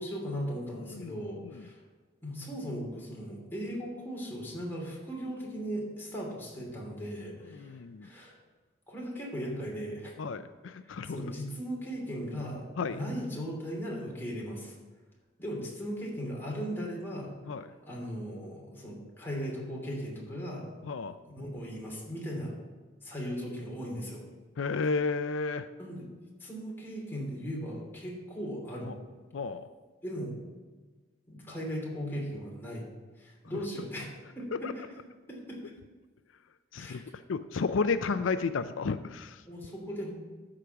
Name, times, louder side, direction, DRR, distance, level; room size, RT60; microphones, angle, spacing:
voice 1, 0.0-1.8 2.2-8.3 8.9-10.1 10.8-14.7 15.4-17.3 17.9-20.7 21.3-22.5 23.0-24.2 25.8-26.1 26.4-28.9 30.0-30.4 31.3-32.8 33.2-34.1 34.4-34.8 35.3-35.6 36.7-37.0 39.4-40.1, equal, 10° left, -4 dB, 2.9 m, -38 dB
voice 2, 7.6-8.1 10.2-11.2 12.8-13.0 17.5-17.6 20.8-21.1 24.6-25.7 29.3-29.6 34.6-34.7 36.7-37.0 37.3-39.4, left 4 dB, 85° left, 11 dB, 0.5 m, -32 dB
12.5 x 5.0 x 6.9 m, 1.3 s
head